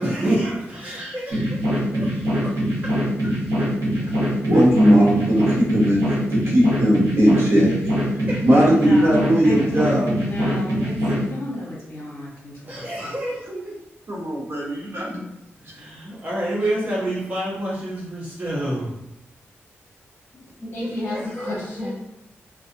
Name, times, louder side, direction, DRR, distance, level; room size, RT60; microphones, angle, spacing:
voice 1, 0.0-3.0 3.2-3.4 8.3-8.4 12.7-13.7 15.6-18.9 20.8-21.9, right 1 dB, 35° right, -8 dB, 1.1 m, -28 dB
sound 1, 1.3-11.2, equal, 80° right, 1.1 m, -23 dB
voice 2, 4.5-6.0 6.3-7.7 8.4-10.1 14.1-15.2, equal, 60° right, -5 dB, 0.9 m, -18 dB
voice 3, 8.7-9.6 10.2-10.9 11.2-13.1 20.6-21.9, left 1 dB, 50° left, -5 dB, 0.9 m, -33 dB
2.4 x 2.3 x 2.7 m, 0.84 s
wide cardioid pair, 115°, 5 cm